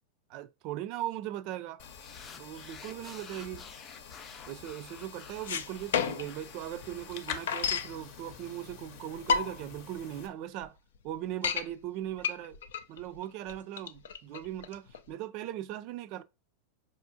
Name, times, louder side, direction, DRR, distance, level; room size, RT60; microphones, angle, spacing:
voice 1, 0.3-1.8 2.4-3.7 4.5-10.8 11.0-12.6 12.9-16.2, right 12 dB, 50° right, 0.3 m, -39 dB
sound 1, 1.8-10.3, left 7 dB, 60° left, 0.7 m, -47 dB
sound 2, 2.0-8.5, left 6 dB, 25° left, 0.6 m, -52 dB
sound 3, 5.5-6.4 6.8-6.9 7.0-8.0 8.7-8.8 9.1-9.8 10.3-10.4 10.6-10.7 11.1-11.7 12.2-15.1, left 6 dB, 75° left, 0.4 m, -31 dB
4.8 x 2.5 x 2.7 m
hypercardioid pair, 100°, 0 cm